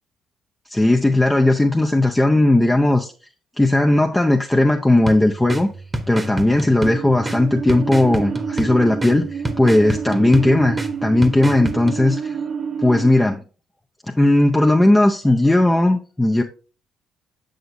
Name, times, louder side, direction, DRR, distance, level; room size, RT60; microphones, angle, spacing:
voice 1, 0.7-3.1 3.6-5.7 6.1-12.4 12.8-13.4 14.1-16.4, left 1 dB, 15° left, 0.5 m, -17 dB
sound 1, 5.1-12.0, right 1 dB, 20° right, 1.0 m, -29 dB
sound 2, 6.8-13.1, right 6 dB, 50° right, 0.6 m, -29 dB
6.9 x 6.4 x 2.6 m
hypercardioid pair, 55°, 0 cm